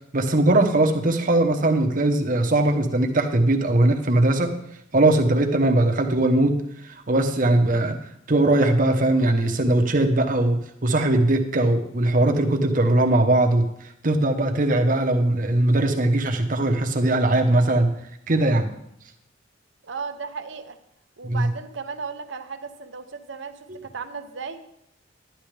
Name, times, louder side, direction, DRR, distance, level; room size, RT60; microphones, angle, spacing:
voice 1, 0.1-4.6 4.9-8.0 8.3-18.0 18.3-18.7 21.2-21.5, right 2 dB, 45° right, 4 dB, 0.9 m, -20 dB
voice 2, 19.8-20.8 21.2-24.6, right 5 dB, 75° right, 8 dB, 0.8 m, -35 dB
11.0 x 10.0 x 3.3 m, 0.76 s
head